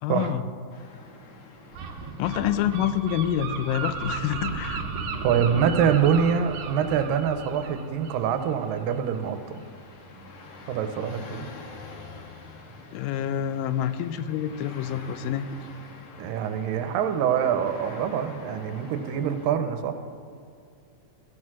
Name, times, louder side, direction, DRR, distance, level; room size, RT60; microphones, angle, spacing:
voice 1, 0.0-0.4 2.2-4.8 12.9-15.5, left 10 dB, 90° left, 12 dB, 2.3 m, -27 dB
sound 1, 0.7-19.5, left 3 dB, 65° left, 2.4 m, -47 dB
Gull seagull, 1.7-9.2, right 5 dB, 65° right, 1.7 m, -35 dB
voice 2, 5.2-9.4 10.7-11.5 16.2-20.0, right 8 dB, 85° right, 8 dB, 2.4 m, -25 dB
14.5 x 6.5 x 6.1 m, 2.3 s
omnidirectional pair, 4.0 m